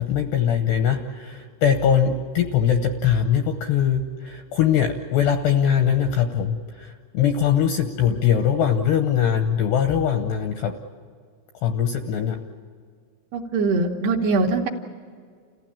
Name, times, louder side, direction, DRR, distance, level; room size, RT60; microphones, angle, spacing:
voice 1, 0.0-10.7 11.6-12.4, left 8 dB, 80° left, 5 dB, 2.4 m, -21 dB
voice 2, 13.3-14.7, right 3 dB, 70° right, 0 dB, 2.6 m, -22 dB
29.5 x 15.5 x 8.7 m, 2.1 s
omnidirectional pair, 5.9 m